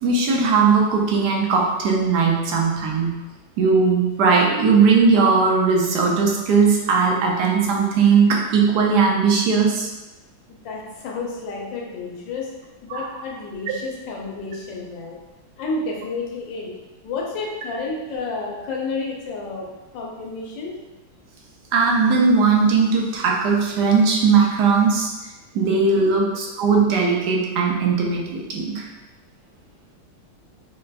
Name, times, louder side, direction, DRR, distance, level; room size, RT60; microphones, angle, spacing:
voice 1, 0.0-3.2 3.6-9.9 12.9-13.1 21.7-25.1 25.5-28.9, right 5 dB, 70° right, -1 dB, 1.0 m, -18 dB
voice 2, 10.5-12.5 12.8-15.2 15.6-16.7 17.0-19.7 19.9-20.8 25.9-26.2, left 3 dB, 70° left, -2 dB, 1.4 m, -31 dB
5.1 x 2.4 x 2.2 m, 1.1 s
omnidirectional pair, 2.2 m